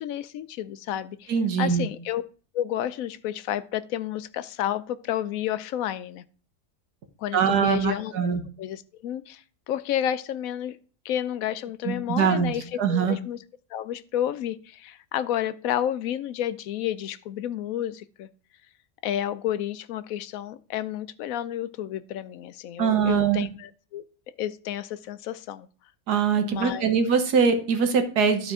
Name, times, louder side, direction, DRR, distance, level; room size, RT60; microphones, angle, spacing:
voice 1, 0.0-1.3 1.6-2.2 2.5-6.2 7.2-8.1 8.6-10.8 11.0-13.4 13.7-18.3 19.0-24.0 24.4-25.7 26.4-26.9, left 11 dB, 70° left, 14 dB, 0.9 m, -31 dB
voice 2, 1.3-1.9 7.3-8.4 11.9-13.2 22.8-23.5 26.1-28.5, right 6 dB, 90° right, 7 dB, 1.7 m, -23 dB
12.0 x 4.3 x 4.8 m, 0.40 s
omnidirectional pair, 1.7 m